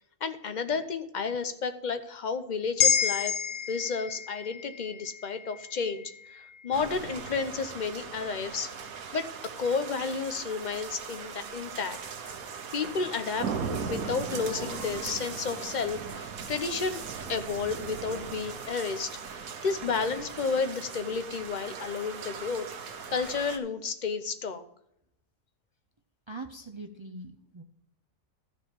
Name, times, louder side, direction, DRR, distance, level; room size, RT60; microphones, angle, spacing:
voice 1, 0.2-3.3 3.7-8.7 9.1-9.3 9.6-12.0 12.7-17.0 17.3-24.6, left 5 dB, 40° left, 10 dB, 0.8 m, -32 dB
sound 1, 2.8-7.3 7.7-7.8, left 8 dB, 80° left, 1.3 m, -30 dB
sound 2, 6.7-23.6, right 5 dB, 90° right, 1.4 m, -39 dB
voice 2, 26.3-27.6, right 2 dB, 45° right, 6 dB, 0.3 m, -42 dB
13.0 x 4.6 x 6.9 m, 0.79 s
omnidirectional pair, 1.5 m